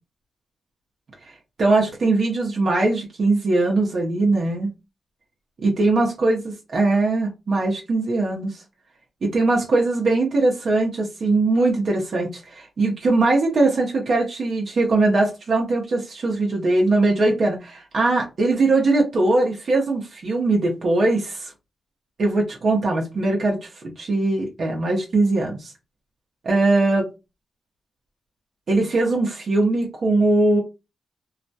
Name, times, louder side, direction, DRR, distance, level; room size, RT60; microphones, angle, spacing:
voice 1, 1.6-4.7 5.6-6.4 6.7-8.6 9.2-21.5 22.2-23.7 24.0-25.7 26.4-27.1 28.7-30.6, right 2 dB, 60° right, 0.7 m, -21 dB
2.3 x 2.1 x 2.6 m
cardioid pair, 70°, 0 cm